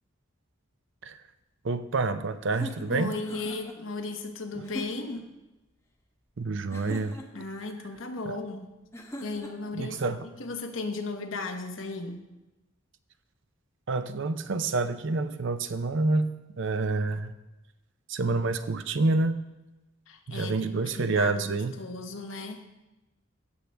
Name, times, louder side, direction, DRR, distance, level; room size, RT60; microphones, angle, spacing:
voice 1, 1.6-3.1 6.4-7.1 9.7-10.2 13.9-16.3 16.6-17.3 18.1-19.4 20.3-21.7, right 3 dB, 60° right, 11 dB, 0.6 m, -27 dB
sound 1, 2.5-3.8 4.6-5.2 6.7-7.5 8.9-9.7, equal, 15° left, 1.0 m, -41 dB
voice 2, 2.9-5.3 7.3-8.7 9.2-12.3 20.1-22.7, left 3 dB, 65° left, 5 dB, 1.1 m, -36 dB
16.0 x 6.5 x 3.4 m, 1.0 s
head